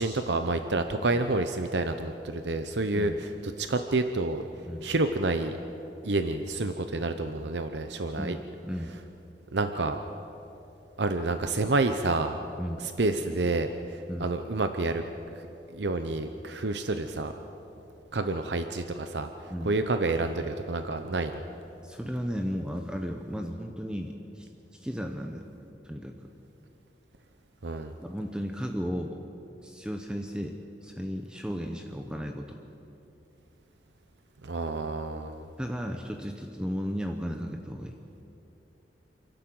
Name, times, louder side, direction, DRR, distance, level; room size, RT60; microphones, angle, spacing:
voice 1, 0.0-4.4 4.8-5.5 6.0-8.4 9.5-10.0 11.0-12.4 12.8-15.0 15.7-17.3 18.1-21.4 27.6-27.9 34.4-35.5, right 2 dB, 70° right, 8 dB, 0.8 m, -29 dB
voice 2, 8.2-9.0 12.6-12.9 14.1-14.3 19.5-19.7 21.8-25.5 25.8-26.3 28.0-29.2 29.6-32.6 35.6-38.0, equal, 5° right, 3 dB, 0.9 m, -35 dB
28.5 x 12.0 x 7.8 m, 2.9 s
head